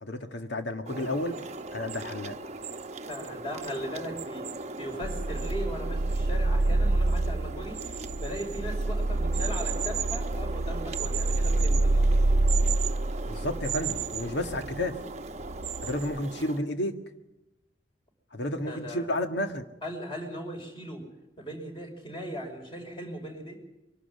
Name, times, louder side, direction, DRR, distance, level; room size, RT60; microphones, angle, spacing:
voice 1, 0.0-1.4 1.7-2.4 13.3-14.9 15.8-17.0 18.3-19.6, left 1 dB, 70° left, 6 dB, 1.9 m, -31 dB
sound 1, 0.9-16.6, right 5 dB, 40° right, 0.9 m, -37 dB
voice 2, 3.1-4.4 4.8-12.2 18.7-19.1 19.8-21.0 21.4-23.6, equal, 30° left, 3 dB, 5.4 m, -38 dB
sound 2, 5.0-14.9 15.4-16.2, right 2 dB, 85° right, 0.7 m, -27 dB
23.5 x 12.5 x 9.4 m, 0.93 s
head